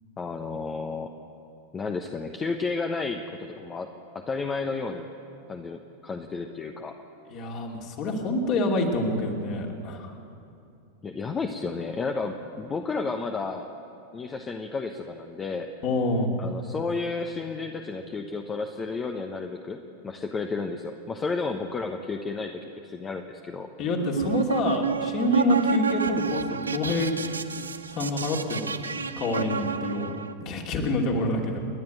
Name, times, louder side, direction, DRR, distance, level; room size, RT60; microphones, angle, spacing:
voice 1, 0.2-1.1 1.7-3.9 4.1-5.1 5.5-7.0 11.0-13.7 14.1-15.7 16.4-23.7, left 4 dB, 20° left, 5 dB, 1.1 m, -32 dB
voice 2, 7.3-10.2 15.8-16.3 23.8-27.2 27.9-30.1 30.4-31.6, left 1 dB, 40° left, 1 dB, 2.8 m, -27 dB
sound 1, 24.0-30.3, right 6 dB, 75° right, 0.8 m, -29 dB
29.5 x 11.0 x 9.1 m, 2.7 s
figure-of-eight pair, 90°, 0 cm